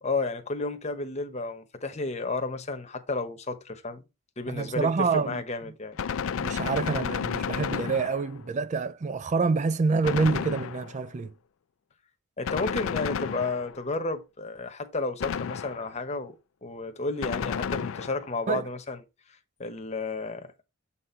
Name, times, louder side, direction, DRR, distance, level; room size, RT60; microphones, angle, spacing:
voice 1, 0.0-4.0 4.4-6.0 12.4-16.3 16.6-19.0 19.6-20.5, left 3 dB, 30° left, 1.0 m, -32 dB
voice 2, 4.5-5.4 6.4-11.3 18.5-18.7, right 4 dB, 35° right, 0.4 m, -27 dB
Gunshot gunfire, 6.0-8.5 10.0-11.1 12.4-13.9 15.2-16.0 17.2-18.4, left 7 dB, 70° left, 0.4 m, -32 dB
7.6 x 4.2 x 4.3 m
head